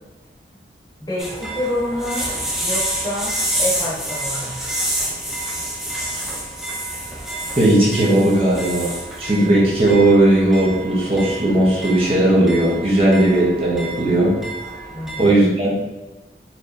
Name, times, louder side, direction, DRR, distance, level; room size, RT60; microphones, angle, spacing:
voice 1, 1.0-2.2 2.6-3.3 3.6-4.6 14.9-15.3, left 1 dB, 25° left, -7 dB, 1.1 m, -27 dB
sound 1, 1.2-15.3, right 1 dB, ahead, 0.6 m, -28 dB
voice 2, 7.6-14.3 15.2-15.7, right 1 dB, 35° right, -5 dB, 0.8 m, -16 dB
4.2 x 3.2 x 2.6 m, 1.1 s
head